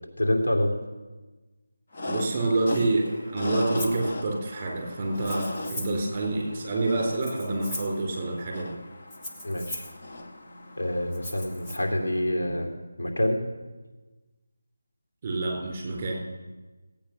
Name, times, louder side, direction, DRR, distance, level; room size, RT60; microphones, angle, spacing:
voice 1, 0.2-0.8 9.4-9.9 10.8-12.7 13.0-13.4, left 1 dB, 75° left, 1 dB, 2.9 m, -26 dB
sound 1, 1.9-12.2, left 1 dB, 40° left, 1.5 m, -38 dB
voice 2, 2.1-8.7 15.2-16.2, right 2 dB, 25° right, -1 dB, 3.8 m, -27 dB
Rattle (instrument), 3.8-4.0 5.1-6.1 7.1-8.0 9.1-10.0 11.1-11.8, left 1 dB, 10° left, 0.9 m, -39 dB
15.5 x 8.8 x 6.1 m, 1.2 s
figure-of-eight pair, 165°, 0 cm